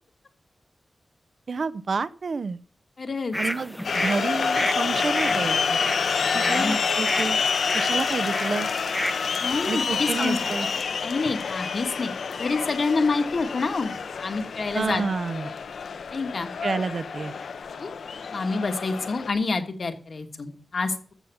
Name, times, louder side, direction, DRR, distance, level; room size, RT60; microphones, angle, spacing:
voice 1, 1.5-2.6 3.4-5.8 6.3-7.4 7.7-8.7 9.7-10.7 14.7-15.5 16.6-17.3, right 4 dB, 55° right, 16 dB, 0.5 m, -29 dB
voice 2, 3.0-3.3 6.3-6.8 9.4-10.4 11.0-12.1 12.4-13.9 14.2-15.0 15.3-15.5 16.1-16.5 17.8-17.9 18.3-21.1, left 3 dB, 55° left, 6 dB, 1.5 m, -27 dB
sound 1, 3.3-10.8, equal, 5° left, 0.6 m, -33 dB
sound 2, 3.8-19.3, left 5 dB, 90° left, 0.8 m, -28 dB
14.0 x 5.7 x 6.9 m, 0.44 s
wide cardioid pair, 135°, 0 cm